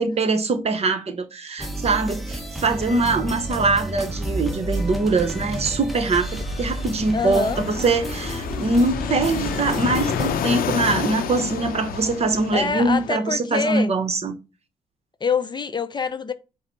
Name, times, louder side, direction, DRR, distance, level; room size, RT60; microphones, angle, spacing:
voice 1, 0.0-14.3, right 3 dB, 45° right, 0.8 m, -23 dB
sound 1, 1.6-10.3, right 1 dB, ahead, 0.8 m, -31 dB
Fixed-wing aircraft airplane, 6.3-13.1, left 8 dB, 80° left, 0.5 m, -29 dB
voice 2, 7.1-7.6 12.5-13.9 15.2-16.3, left 5 dB, 30° left, 0.4 m, -25 dB
5.7 x 2.0 x 4.4 m
cardioid pair, 85°, 15 cm